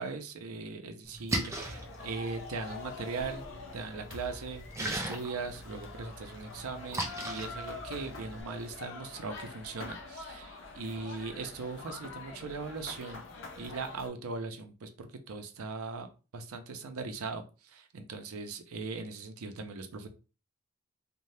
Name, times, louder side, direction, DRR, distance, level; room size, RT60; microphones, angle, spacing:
voice 1, 0.0-3.4 3.7-13.2 13.6-20.1, right 4 dB, 85° right, 7 dB, 0.5 m, -39 dB
Splash splatter, 1.0-8.4, right 1 dB, 15° right, 0.3 m, -40 dB
sound 1, 1.5-14.1, left 3 dB, 55° left, 0.5 m, -45 dB
2.7 x 2.2 x 3.2 m, 0.33 s
head